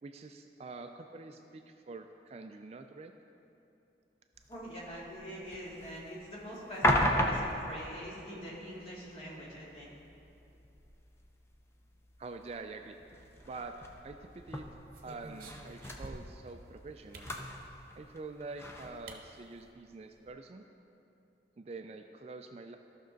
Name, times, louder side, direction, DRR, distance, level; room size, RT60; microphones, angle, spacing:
voice 1, 0.0-3.1 12.2-13.0 13.4-13.8 14.0-14.7 15.0-17.3 18.0-20.6 21.6-22.8, right 3 dB, 35° right, 6 dB, 0.3 m, -46 dB
sound 1, 4.4-19.7, equal, 15° left, 0.6 m, -38 dB
voice 2, 4.5-9.9, equal, 35° left, -6 dB, 2.1 m, -44 dB
sound 2, 13.2-13.9 14.4-16.4 17.1-17.4 18.5-18.6 19.1-19.2 19.6-19.7 19.9-20.3, right 2 dB, 50° right, 0.8 m, -51 dB
14.0 x 6.1 x 3.9 m, 2.8 s
head